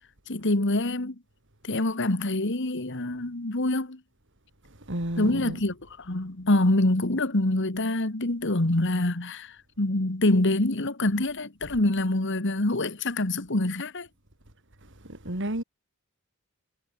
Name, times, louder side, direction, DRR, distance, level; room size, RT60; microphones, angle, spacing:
voice 1, 0.3-1.2 1.7-4.0 5.2-14.1, left 2 dB, 60° left, 1.9 m, -25 dB
voice 2, 4.9-5.6 15.0-15.6, right 1 dB, 60° right, 4.4 m, -31 dB
head